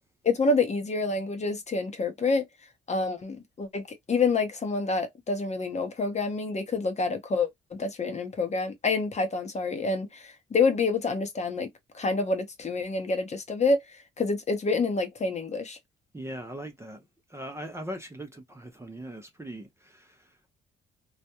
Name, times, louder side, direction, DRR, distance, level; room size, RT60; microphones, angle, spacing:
voice 1, 0.2-2.4 2.9-3.8 4.1-7.5 7.8-11.7 11.9-13.8 14.2-15.8, left 3 dB, 35° left, 0.7 m, -27 dB
voice 2, 16.1-17.0 17.3-20.5, right 1 dB, 15° right, 0.5 m, -40 dB
2.3 x 2.1 x 2.8 m
cardioid pair, 90°, 20 cm